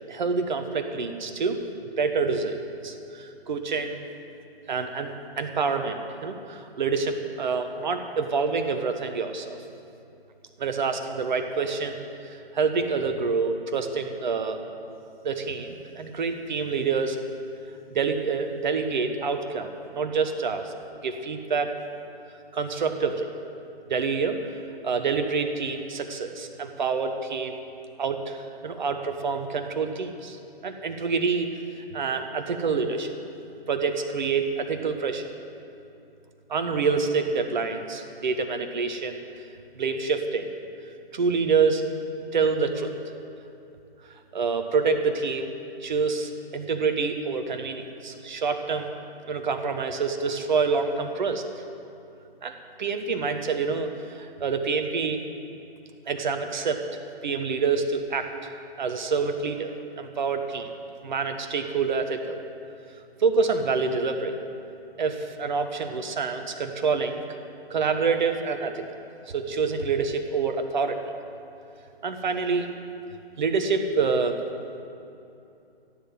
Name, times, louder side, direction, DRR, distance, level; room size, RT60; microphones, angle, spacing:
voice 1, 0.1-1.6 2.0-2.6 2.8-4.1 4.7-9.6 10.6-14.6 15.2-17.2 17.9-20.7 21.0-21.7 22.5-23.3 23.9-24.4 24.8-27.6 28.0-30.4 30.6-31.5 31.9-33.1 33.7-35.3 36.5-39.2 39.8-40.5 41.1-42.9 44.3-45.5 45.8-48.9 49.3-51.4 52.4-55.2 56.1-56.8 57.2-58.5 58.8-60.7 61.0-62.4 63.2-64.4 65.0-67.2 67.7-68.9 69.3-71.0 72.0-72.7 73.4-74.4, right 5 dB, 50° right, 7 dB, 1.2 m, -27 dB
15.0 x 7.7 x 7.5 m, 2.8 s
figure-of-eight pair, 135°, 31 cm